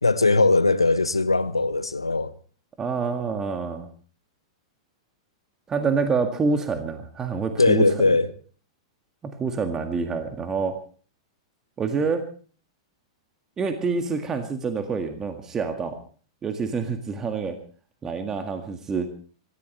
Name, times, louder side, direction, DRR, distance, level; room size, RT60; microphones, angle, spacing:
voice 1, 0.0-2.3 7.6-8.3, left 3 dB, 85° left, 1.1 m, -20 dB
voice 2, 2.8-3.9 5.7-7.9 9.2-10.8 11.8-12.2 13.6-16.0 16.4-17.6 18.0-19.1, right 5 dB, 20° right, 1.9 m, -27 dB
25.5 x 15.0 x 3.3 m
figure-of-eight pair, 100°, 3 cm